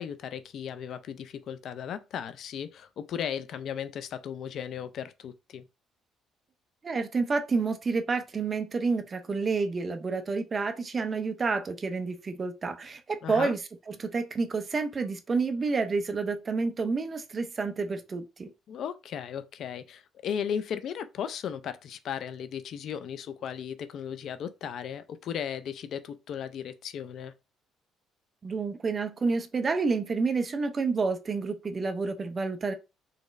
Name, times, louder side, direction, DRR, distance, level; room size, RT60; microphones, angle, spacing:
voice 1, 0.0-5.6 13.2-13.5 18.7-27.3, left 8 dB, 60° left, 0.4 m, -36 dB
voice 2, 6.8-13.6 13.9-18.5 28.4-32.7, right 4 dB, 30° right, 0.5 m, -29 dB
4.0 x 3.0 x 2.5 m
cardioid pair, 135°, 0 cm